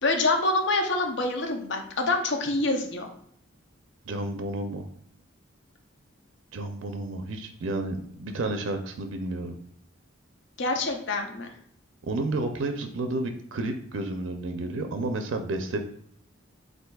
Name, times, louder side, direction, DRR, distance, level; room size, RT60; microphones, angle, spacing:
voice 1, 0.0-3.1 10.6-11.5, left 2 dB, 65° left, 4 dB, 0.7 m, -26 dB
voice 2, 4.1-4.9 6.5-9.6 12.0-15.8, right 2 dB, 70° right, 6 dB, 0.5 m, -31 dB
7.7 x 2.6 x 2.3 m, 0.69 s
head